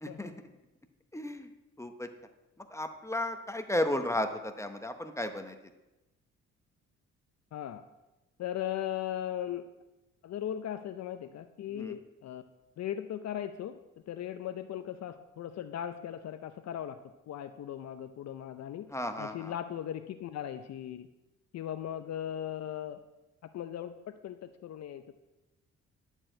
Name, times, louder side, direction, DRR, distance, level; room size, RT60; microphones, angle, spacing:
voice 1, 0.0-0.3 1.1-1.5 1.8-2.1 2.7-5.5 11.7-12.0 18.9-19.5, left 1 dB, 10° left, 7 dB, 0.8 m, -34 dB
voice 2, 7.5-7.9 8.4-9.7 10.2-12.4 12.8-13.8 14.1-17.0 17.3-18.9 19.2-21.1 21.5-23.0 23.4-25.1, left 10 dB, 60° left, 10 dB, 0.6 m, -38 dB
11.0 x 4.6 x 7.7 m, 1.0 s
cardioid pair, 90°, 30 cm